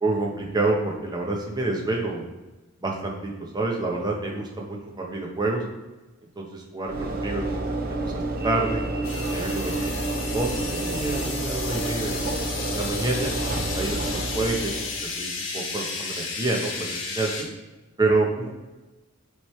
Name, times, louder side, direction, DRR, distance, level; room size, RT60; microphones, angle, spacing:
voice 1, 0.0-2.3 2.8-5.6 6.4-8.8 9.3-12.2 12.7-13.4 13.7-17.5 18.0-18.5, right 2 dB, 20° right, -1 dB, 1.0 m, -28 dB
Train / Engine / Alarm, 6.8-15.1, right 2 dB, 45° right, 0.7 m, -29 dB
sound 1, 9.0-17.4, left 4 dB, 65° left, 1.2 m, -33 dB
7.5 x 3.3 x 4.5 m, 1.1 s
head